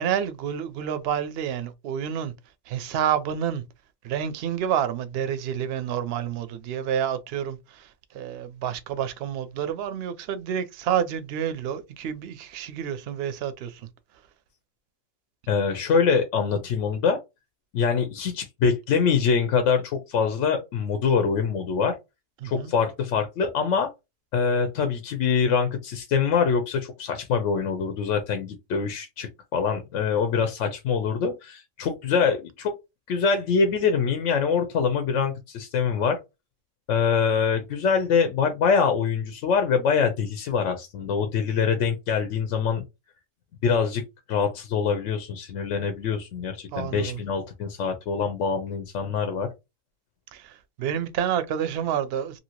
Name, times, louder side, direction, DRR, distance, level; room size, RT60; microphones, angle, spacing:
voice 1, 0.0-2.3 2.7-3.6 4.0-13.9 22.4-22.7 46.7-47.2 50.3-52.4, right 9 dB, 65° right, 0.6 m, -29 dB
voice 2, 15.5-17.2 17.7-22.0 22.4-23.9 24.3-32.7 33.1-36.2 36.9-42.8 43.6-44.0 44.3-49.5, left 6 dB, 70° left, 0.9 m, -24 dB
2.7 x 2.7 x 2.8 m
omnidirectional pair, 1.4 m